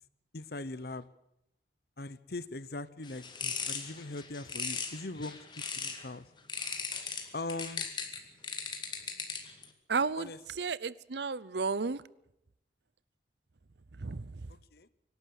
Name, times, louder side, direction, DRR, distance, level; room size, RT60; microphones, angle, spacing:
voice 1, 0.3-1.1 2.0-6.3 7.3-7.9 10.2-10.4 14.5-14.9, left 2 dB, 60° left, 17 dB, 1.0 m, -41 dB
sound 1, 3.0-6.1 6.5-9.6, left 5 dB, 25° left, 2.2 m, -38 dB
voice 2, 9.9-10.3 10.6-12.0 14.0-14.3, right 4 dB, 70° right, 20 dB, 0.7 m, -32 dB
24.5 x 12.0 x 9.5 m, 0.80 s
head